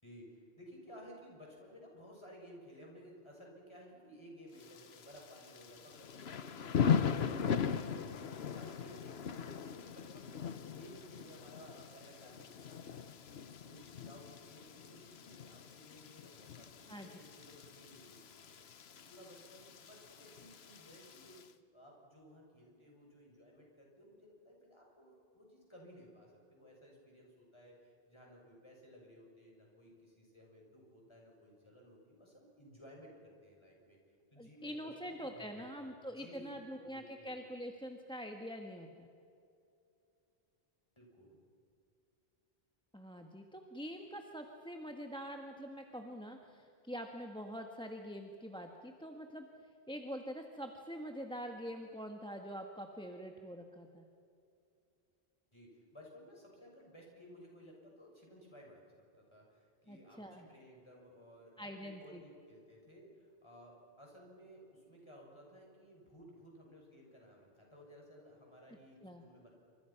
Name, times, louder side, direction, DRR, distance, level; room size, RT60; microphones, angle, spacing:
voice 1, 0.0-18.6 18.9-21.4 21.7-34.0 34.3-35.7 36.1-37.4 41.0-41.4 55.5-69.7, equal, 25° left, -1 dB, 7.0 m, -57 dB
Thunder / Rain, 4.6-21.5, left 7 dB, 75° left, 1.2 m, -39 dB
voice 2, 34.4-39.1 42.9-49.5 49.9-54.1 59.9-60.5 61.6-62.2 69.0-69.2, equal, 5° left, 3 dB, 1.4 m, -45 dB
29.0 x 26.5 x 5.9 m, 2.5 s
omnidirectional pair, 1.1 m